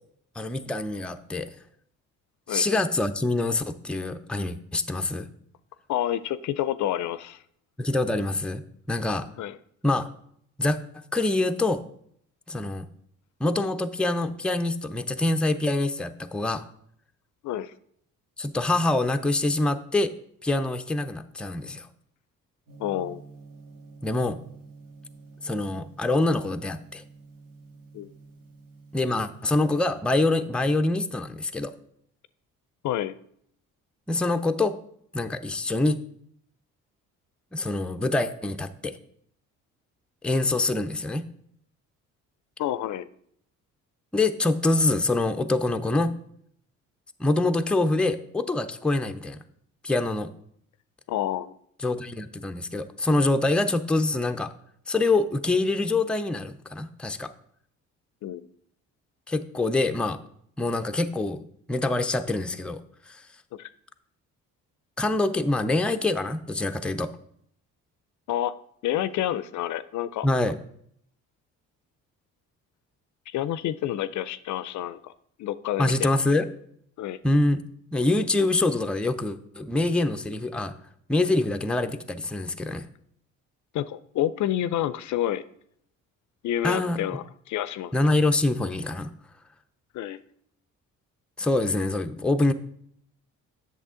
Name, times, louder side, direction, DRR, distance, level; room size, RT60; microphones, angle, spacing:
voice 1, 0.4-1.5 2.5-5.3 7.8-8.6 8.9-9.3 9.8-10.0 10.6-10.8 11.1-11.8 12.5-12.9 13.4-16.6 18.4-20.1 20.4-21.9 24.0-24.4 25.4-27.0 28.9-31.7 34.1-34.8 35.1-36.0 37.5-39.0 40.2-41.3 44.1-46.1 47.2-49.4 49.8-50.3 51.8-54.5 54.9-57.3 59.3-60.2 60.6-61.4 61.7-62.8 63.1-63.2 65.0-67.1 70.2-70.6 75.8-76.5 77.2-77.7 77.9-80.7 81.1-82.9 86.6-87.0 87.9-89.1 91.4-92.5, left 2 dB, 5° left, 7 dB, 0.4 m, -25 dB
voice 2, 5.9-7.4 9.4-9.6 17.4-17.7 22.8-23.2 27.9-28.1 32.8-33.2 42.6-43.1 51.1-51.5 58.2-58.5 63.5-63.7 68.3-68.6 68.8-70.3 73.3-75.1 75.4-76.1 77.0-77.2 83.7-85.4 86.4-87.9 89.9-90.2, left 12 dB, 60° left, 15 dB, 0.4 m, -29 dB
Gong, 22.7-30.0, right 3 dB, 75° right, 1.8 m, -49 dB
8.1 x 6.3 x 3.7 m, 0.68 s
supercardioid pair, 70°, 33 cm